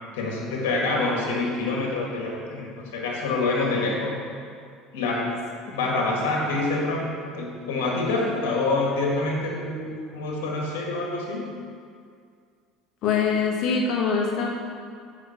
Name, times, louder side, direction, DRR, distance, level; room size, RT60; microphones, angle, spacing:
voice 1, 0.1-4.2 4.9-5.3 5.7-11.5, left 2 dB, 90° left, -2 dB, 1.8 m, -26 dB
voice 2, 13.0-14.5, left 5 dB, 60° left, -1 dB, 1.6 m, -23 dB
7.1 x 5.6 x 5.9 m, 2.2 s
supercardioid pair, 100°, 0 cm